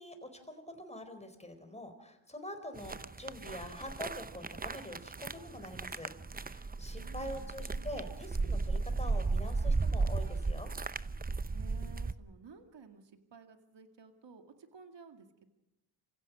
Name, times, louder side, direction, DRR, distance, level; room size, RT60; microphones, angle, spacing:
voice 1, 0.0-10.7, left 1 dB, 15° left, 7 dB, 4.3 m, -45 dB
sound 1, 2.8-12.1, right 3 dB, 20° right, 0.7 m, -35 dB
voice 2, 7.0-8.0 11.5-15.5, right 5 dB, 60° right, 7 dB, 2.3 m, -54 dB
28.0 x 16.0 x 6.3 m, 0.89 s
cardioid pair, 60°, 49 cm